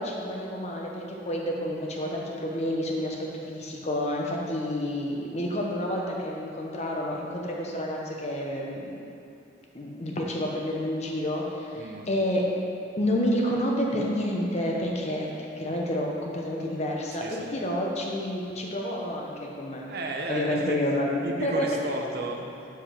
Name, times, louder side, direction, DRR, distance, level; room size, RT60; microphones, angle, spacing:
voice 1, 0.0-8.9 9.7-12.4 13.0-15.3 15.6-19.9 20.3-21.7, left 1 dB, 35° left, -1 dB, 0.9 m, -29 dB
voice 2, 11.8-12.1 17.1-17.5 19.9-20.8 21.2-22.7, right 2 dB, 60° right, 1 dB, 0.7 m, -34 dB
5.1 x 4.8 x 5.8 m, 2.8 s
head